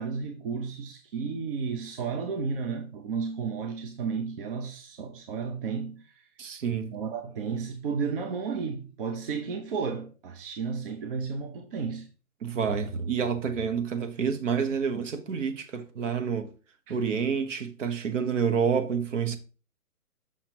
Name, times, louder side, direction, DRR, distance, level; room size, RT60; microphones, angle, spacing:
voice 1, 0.0-6.2 6.7-12.1 16.9-17.0, right 5 dB, 35° right, 0.7 m, -33 dB
voice 2, 6.4-6.9 12.4-16.5 16.9-19.4, right 6 dB, 55° right, 1.1 m, -28 dB
5.9 x 5.9 x 3.0 m
hypercardioid pair, 140°, 45 cm